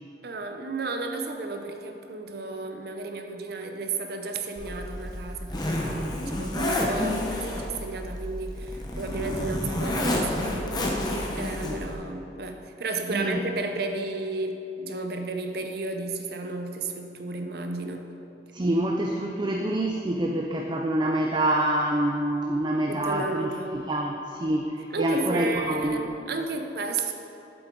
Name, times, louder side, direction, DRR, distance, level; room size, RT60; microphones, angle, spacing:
voice 1, 0.2-18.1 22.9-23.9 24.9-27.1, right 3 dB, 60° right, 5 dB, 0.7 m, -33 dB
Zipper (clothing), 4.6-11.9, left 1 dB, 25° left, 0.9 m, -30 dB
voice 2, 18.5-26.1, right 1 dB, 25° right, 1 dB, 0.4 m, -26 dB
7.8 x 7.7 x 3.8 m, 3.0 s
head